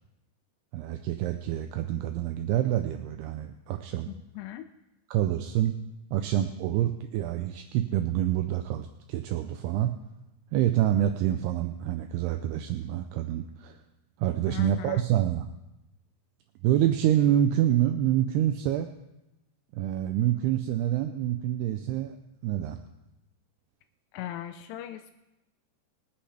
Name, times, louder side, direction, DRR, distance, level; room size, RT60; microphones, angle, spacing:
voice 1, 0.7-4.1 5.1-5.8 6.1-9.9 10.5-13.8 14.2-15.5 16.6-18.9 19.7-22.2 22.4-22.8, right 12 dB, 80° right, 7 dB, 2.6 m, -27 dB
voice 2, 4.4-4.7 14.5-15.1 24.1-25.1, left 12 dB, 85° left, 6 dB, 2.8 m, -38 dB
24.0 x 8.6 x 3.4 m, 0.94 s
omnidirectional pair, 4.8 m